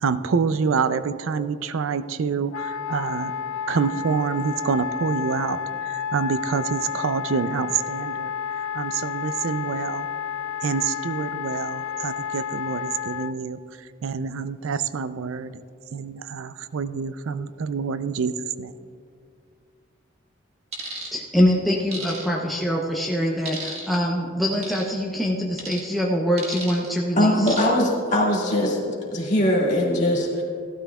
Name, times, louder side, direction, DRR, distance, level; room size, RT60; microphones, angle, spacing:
voice 1, 0.0-3.3 3.7-8.3 8.7-10.1 10.6-13.6 14.0-15.5 15.9-18.7, right 5 dB, 85° right, 13 dB, 0.4 m, -27 dB
Wind instrument woodwind instrument, 2.5-13.3, left 7 dB, 90° left, 0.3 m, -31 dB
sound 1, 20.7-21.1 21.9-22.6 23.5-24.0 24.6-24.9 25.6-25.8 26.4-26.9 27.5-27.9 28.3-28.5, right 3 dB, 30° right, 1.5 m, -34 dB
voice 2, 21.1-27.6, equal, ahead, -3 dB, 0.7 m, -24 dB
voice 3, 27.2-30.4, left 1 dB, 35° left, -3 dB, 2.0 m, -21 dB
15.5 x 12.0 x 2.3 m, 2.2 s
head